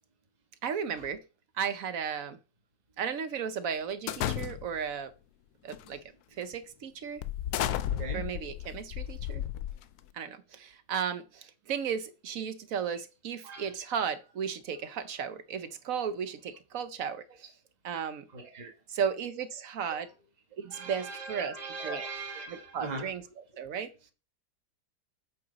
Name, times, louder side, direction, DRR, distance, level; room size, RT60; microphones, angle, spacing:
voice 1, 0.6-1.2 1.6-2.4 3.0-5.1 5.6-6.0 6.4-7.2 8.1-9.4 10.1-17.2 17.8-18.2 18.9-20.1 20.6-21.5 21.8-22.0 22.5-23.2 23.6-23.9, right 7 dB, 60° right, 1.0 m, -34 dB
sound 1, 4.1-4.9 5.7-6.0 6.4-6.5 7.2-10.1, left 11 dB, 70° left, 1.0 m, -33 dB
voice 2, 7.9-8.2 13.4-13.7 18.3-18.7 20.7-23.1, right 3 dB, 25° right, 1.4 m, -40 dB
8.0 x 5.3 x 4.0 m
omnidirectional pair, 1.9 m